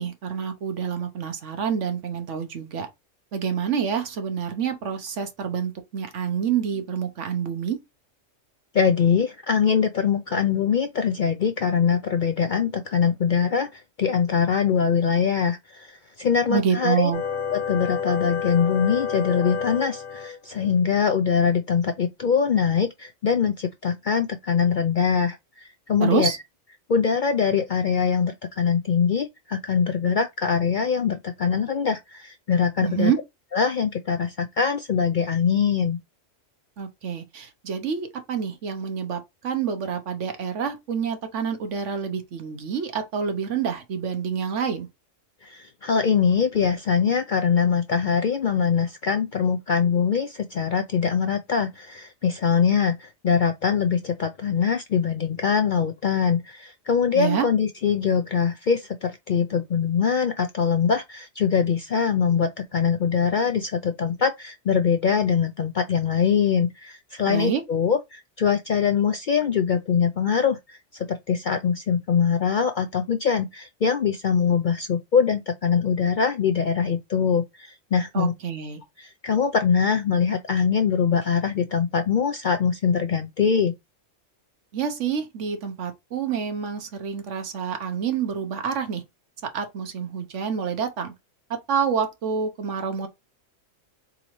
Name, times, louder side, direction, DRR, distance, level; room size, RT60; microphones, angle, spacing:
voice 1, 0.0-2.9 3.3-7.8 16.5-17.2 26.0-26.4 32.8-33.2 36.8-44.9 57.1-57.5 67.3-67.6 78.1-78.8 84.7-89.0 89.5-91.1 91.7-93.1, right 7 dB, 70° right, 1.2 m, -27 dB
voice 2, 8.7-17.1 17.5-26.3 26.9-33.1 33.5-36.0 45.4-78.3 79.0-83.7, left 6 dB, 60° left, 0.5 m, -23 dB
sound 1, 17.1-20.4, left 7 dB, 85° left, 1.2 m, -29 dB
4.0 x 3.8 x 3.0 m
omnidirectional pair, 1.3 m